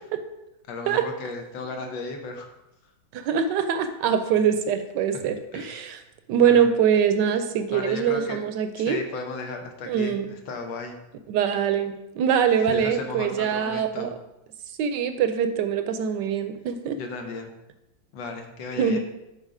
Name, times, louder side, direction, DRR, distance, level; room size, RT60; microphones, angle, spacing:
voice 1, 0.7-2.5 4.3-4.5 5.1-5.9 6.4-6.7 7.7-8.4 8.8-11.0 12.6-14.1 16.9-17.5 18.1-19.0, left 3 dB, 80° left, 4 dB, 1.6 m, -35 dB
voice 2, 3.1-6.0 6.3-9.0 9.9-10.3 11.3-14.1 14.8-17.0 18.8-19.0, right 8 dB, 75° right, 9 dB, 1.2 m, -23 dB
6.5 x 4.3 x 4.8 m, 0.91 s
omnidirectional pair, 2.0 m